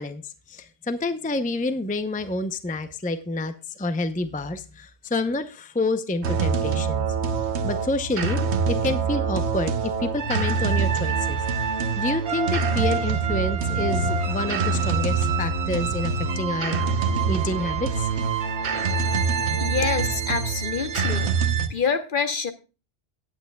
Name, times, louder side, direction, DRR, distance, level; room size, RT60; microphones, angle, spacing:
voice 1, 0.0-7.1 7.6-11.4 12.0-18.1 18.7-18.9, left 2 dB, 10° left, 10 dB, 0.5 m, -28 dB
sound 1, 6.2-21.7, right 5 dB, 80° right, 1.2 m, -25 dB
voice 2, 19.6-21.3 21.7-22.5, left 5 dB, 50° left, 9 dB, 1.1 m, -26 dB
17.5 x 8.7 x 2.3 m, 0.30 s
omnidirectional pair, 1.1 m